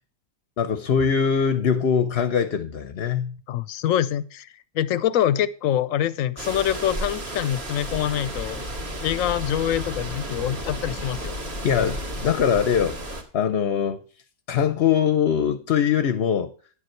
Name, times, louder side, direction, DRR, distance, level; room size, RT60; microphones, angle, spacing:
voice 1, 0.6-3.4 11.6-14.0 14.5-16.5, left 7 dB, 55° left, 0.9 m, -22 dB
voice 2, 3.5-4.5 4.7-8.6 9.0-11.4, left 11 dB, 85° left, 1.1 m, -25 dB
sound 1, 6.4-13.2, right 1 dB, 50° right, 2.1 m, -33 dB
10.5 x 8.0 x 4.4 m
omnidirectional pair, 1.4 m